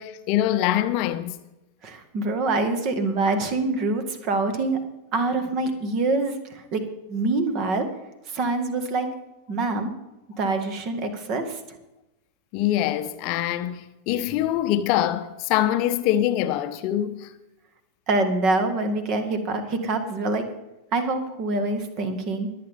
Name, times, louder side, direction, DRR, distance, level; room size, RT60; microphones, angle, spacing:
voice 1, 0.0-1.3 12.5-13.8 14.1-17.1, left 12 dB, 45° left, 0.8 m, -24 dB
voice 2, 1.8-4.8 5.1-6.8 7.1-7.9 8.3-9.1 9.5-9.9 10.4-11.6 18.1-20.4 20.9-22.5, right 3 dB, 40° right, 1.9 m, -25 dB
22.5 x 8.5 x 3.7 m
figure-of-eight pair, 90°, 0 cm